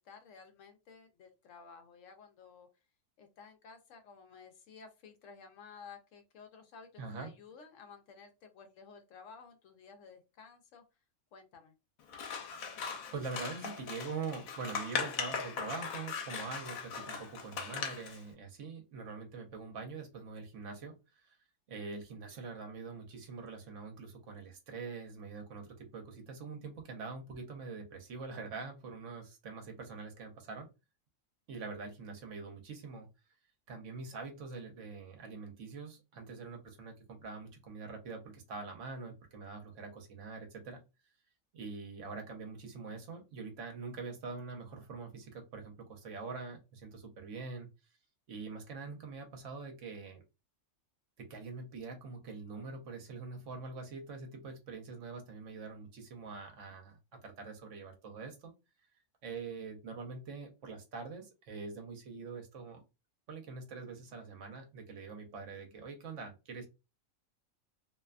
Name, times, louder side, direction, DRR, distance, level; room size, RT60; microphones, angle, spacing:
voice 1, 0.0-2.7 3.2-10.8 11.3-11.7, left 5 dB, 70° left, 6 dB, 0.9 m, -54 dB
voice 2, 7.0-7.3 13.1-21.4 21.7-30.7 31.5-33.1 33.7-40.8 41.5-47.7 48.3-50.2 51.2-58.5 59.2-62.8 63.3-66.7, right 4 dB, 65° right, 3 dB, 1.0 m, -44 dB
Scissors, 12.1-18.2, left 6 dB, 90° left, 1.0 m, -39 dB
2.6 x 2.2 x 2.4 m, 0.27 s
omnidirectional pair, 1.4 m